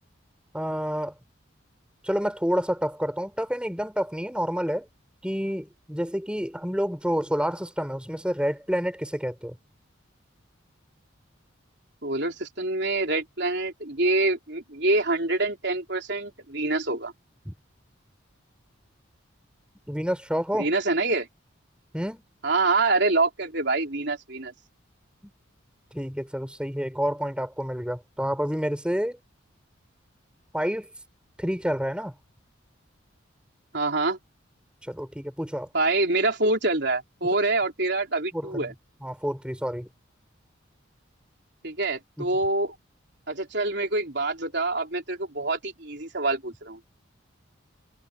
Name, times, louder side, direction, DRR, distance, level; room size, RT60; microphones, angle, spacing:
voice 1, 0.5-1.1 2.0-4.9 5.2-9.6 17.5-17.6 19.9-20.7 21.9-22.2 25.9-29.2 30.5-30.9 31.4-32.1 34.9-35.7 38.3-38.7 39.0-39.9 42.2-42.3, equal, 5° right, 6.0 m, -29 dB
voice 2, 12.0-17.1 20.5-21.3 22.4-24.5 33.7-34.2 35.7-38.7 41.6-42.8 43.3-46.9, right 2 dB, 55° right, 4.1 m, -26 dB
head